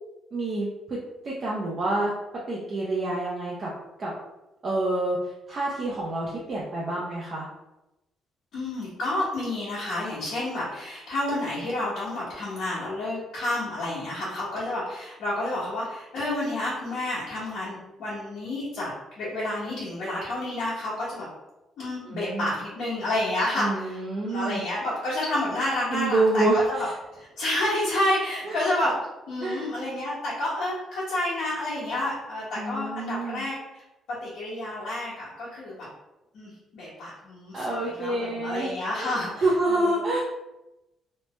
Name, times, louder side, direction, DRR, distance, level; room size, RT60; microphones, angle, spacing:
voice 1, 0.3-1.0 1.2-2.1 2.5-3.7 4.0-4.1 4.6-7.5 22.1-22.5 23.6-24.6 25.9-26.6 28.4-28.6 29.4-29.7 32.6-33.4 37.5-38.7 39.0-39.1 39.4-40.2, right 2 dB, 40° right, -5 dB, 0.5 m, -27 dB
voice 2, 8.5-21.3 21.8-26.9 27.1-28.9 29.3-33.8 34.2-35.9 36.3-40.0, left 1 dB, 70° left, -10 dB, 1.2 m, -30 dB
3.1 x 2.1 x 3.0 m, 0.96 s
cardioid pair, 130°, 0 cm